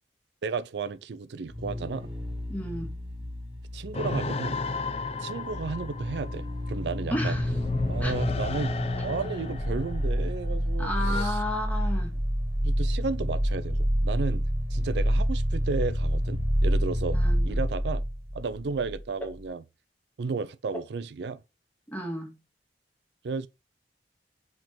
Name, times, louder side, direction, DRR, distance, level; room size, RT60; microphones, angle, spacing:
voice 1, 0.4-2.1 3.7-4.6 5.2-7.4 7.9-11.4 12.6-14.4 14.7-18.0 18.3-19.6 20.2-21.4 23.2-23.5, right 4 dB, 75° right, 0.5 m, -33 dB
sound 1, 1.5-19.0 19.3-19.4, equal, 30° right, 1.8 m, -29 dB
voice 2, 2.5-2.9 7.1-7.5 8.0-8.1 10.8-12.2 17.1-17.6 21.9-22.4, left 1 dB, 10° left, 1.8 m, -32 dB
sound 2, 3.9-11.2, left 3 dB, 35° left, 0.5 m, -34 dB
5.2 x 4.9 x 3.7 m
head